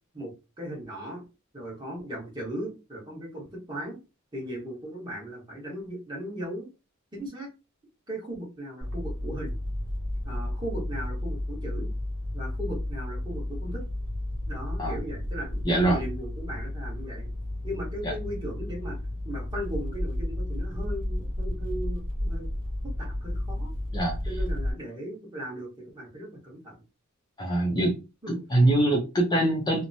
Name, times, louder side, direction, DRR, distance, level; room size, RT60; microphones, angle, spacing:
voice 1, 0.1-1.2 1.5-4.0 4.3-6.7 7.1-7.5 8.1-9.5 10.2-11.9 12.3-13.8 14.5-17.3 17.6-19.0 19.2-22.5 23.0-23.7 24.2-26.8 28.2-28.4, equal, 20° right, -3 dB, 1.2 m, -37 dB
sound 1, 8.8-24.7, left 1 dB, 65° right, 1.3 m, -32 dB
voice 2, 15.6-16.0 18.0-18.1 23.9-24.2 27.4-28.0 28.3-29.8, right 1 dB, 20° left, -2 dB, 0.5 m, -23 dB
2.9 x 2.1 x 2.6 m, 0.28 s
head